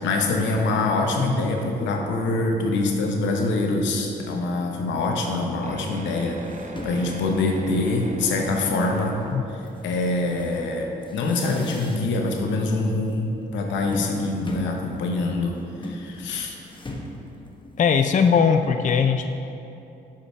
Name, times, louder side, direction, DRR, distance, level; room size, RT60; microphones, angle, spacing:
voice 1, 0.0-6.4 6.7-9.2 9.5-16.5, left 2 dB, 85° left, 2 dB, 0.8 m, -25 dB
sound 1, 5.6-11.0, right 2 dB, 40° right, 0.6 m, -41 dB
sound 2, 5.9-6.0 6.3-9.0 9.6-12.3 12.6-13.1 13.4-18.1, left 2 dB, 25° left, 1.1 m, -39 dB
voice 2, 17.8-19.3, left 6 dB, 45° left, 7 dB, 0.4 m, -19 dB
5.7 x 5.0 x 5.8 m, 2.8 s
supercardioid pair, 50°, 19 cm